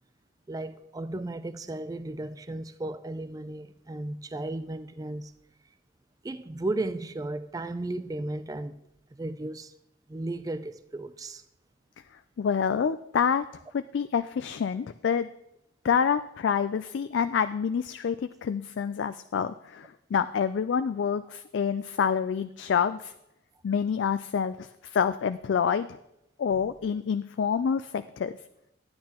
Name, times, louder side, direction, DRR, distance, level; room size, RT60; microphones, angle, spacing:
voice 1, 0.5-5.3 6.2-8.8 9.1-9.7 10.1-11.4, right 2 dB, 20° right, 0.3 m, -35 dB
voice 2, 12.4-13.4 13.7-15.3 15.8-23.1 23.6-25.9 26.4-28.4, left 7 dB, 65° left, 0.3 m, -27 dB
13.0 x 9.5 x 2.9 m
head